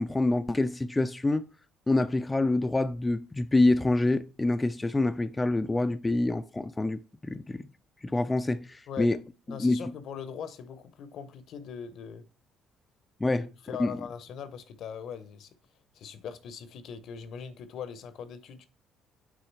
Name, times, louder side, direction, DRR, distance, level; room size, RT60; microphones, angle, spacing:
voice 1, 0.0-1.5 1.9-7.7 8.0-9.2 9.5-9.8 13.2-13.5 13.8-13.9, left 2 dB, 15° left, 0.4 m, -26 dB
voice 2, 9.5-12.2 13.3-15.5 15.9-18.7, left 7 dB, 65° left, 0.8 m, -40 dB
6.3 x 3.8 x 4.6 m
cardioid pair, 95°, 0 cm